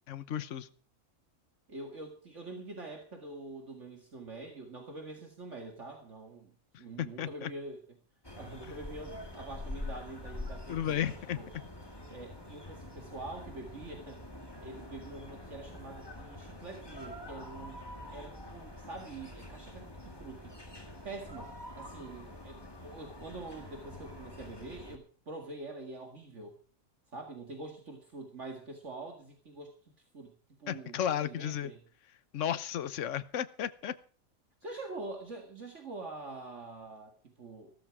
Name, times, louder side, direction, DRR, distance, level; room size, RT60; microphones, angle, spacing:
voice 1, 0.1-0.7 7.0-7.5 10.7-11.6 30.7-31.7 32.3-33.9, left 10 dB, 60° left, 14 dB, 1.2 m, -34 dB
voice 2, 1.7-8.0 8.3-11.5 12.1-14.2 14.6-17.8 18.1-20.6 21.0-26.6 27.1-30.3 30.6-31.8 34.6-37.7, right 2 dB, 55° right, 3 dB, 2.3 m, -45 dB
sound 1, 8.2-25.0, left 1 dB, 15° left, 2.3 m, -46 dB
15.5 x 13.0 x 4.8 m, 0.40 s
omnidirectional pair, 1.5 m